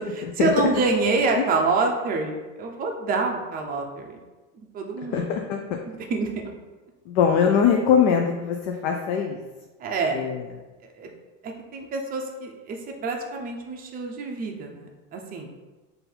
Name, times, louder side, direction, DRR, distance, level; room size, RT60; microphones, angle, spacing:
voice 1, 0.0-4.2 4.7-5.3 5.9-6.3 9.8-10.2 11.0-11.1 11.4-15.5, right 3 dB, 25° right, 2 dB, 0.5 m, -27 dB
voice 2, 5.1-5.6 7.1-9.4 10.1-10.4, left 7 dB, 60° left, 3 dB, 0.5 m, -21 dB
3.8 x 2.7 x 4.3 m, 1.2 s
supercardioid pair, 135°, 39 cm